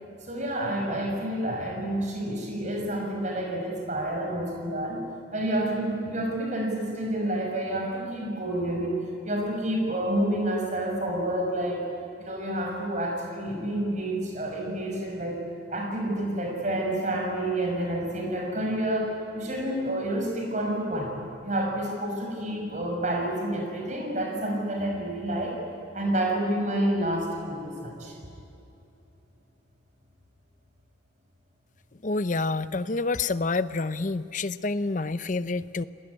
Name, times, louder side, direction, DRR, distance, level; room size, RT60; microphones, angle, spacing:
voice 1, 0.2-5.1 5.3-11.9 12.2-15.4 15.7-21.1 21.4-25.6 25.9-28.2, right 1 dB, 40° right, 1 dB, 6.3 m, -29 dB
voice 2, 32.0-35.8, left 3 dB, 40° left, 14 dB, 0.6 m, -28 dB
28.5 x 19.0 x 9.9 m, 2.8 s
head